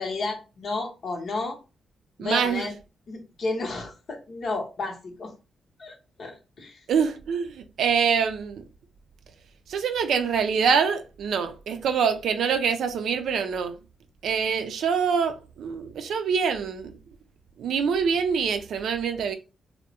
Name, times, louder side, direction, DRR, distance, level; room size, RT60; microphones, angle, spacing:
voice 1, 0.0-1.6 2.2-2.7 3.1-5.3 5.8-6.8, left 3 dB, 65° left, 0.7 m, -32 dB
voice 2, 2.2-2.7 6.9-8.6 9.7-13.8 14.2-17.0 17.6-19.3, right 6 dB, 75° right, 0.3 m, -25 dB
2.2 x 2.0 x 2.8 m
supercardioid pair, 45°, 0 cm